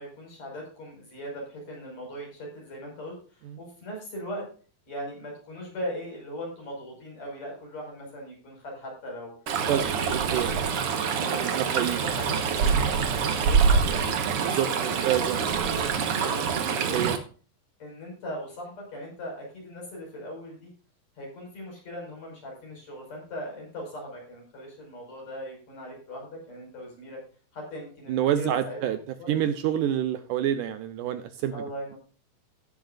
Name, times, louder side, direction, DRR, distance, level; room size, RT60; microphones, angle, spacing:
voice 1, 0.0-4.5 4.9-9.4 9.6-14.0 14.3-17.1 17.8-20.7 21.2-27.2 27.5-28.8 29.2-29.3 31.5-32.0, equal, 50° left, -1 dB, 6.6 m, -39 dB
Stream, 9.5-17.2, right 6 dB, 55° right, 1.7 m, -25 dB
voice 2, 10.1-10.5 11.2-12.0 14.5-15.4 16.9-17.1 28.1-29.0 29.3-31.6, right 11 dB, 75° right, 10 dB, 2.1 m, -27 dB
17.0 x 7.8 x 2.5 m, 0.39 s
omnidirectional pair, 4.0 m